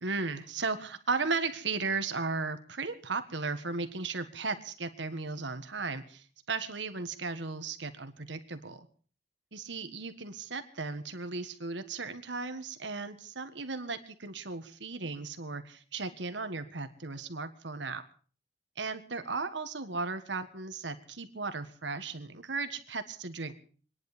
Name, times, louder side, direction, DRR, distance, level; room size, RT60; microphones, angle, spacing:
voice 1, 0.0-8.9 9.5-18.0 18.8-23.6, right 4 dB, 80° right, 9 dB, 1.6 m, -36 dB
26.0 x 10.5 x 5.1 m, 0.42 s
head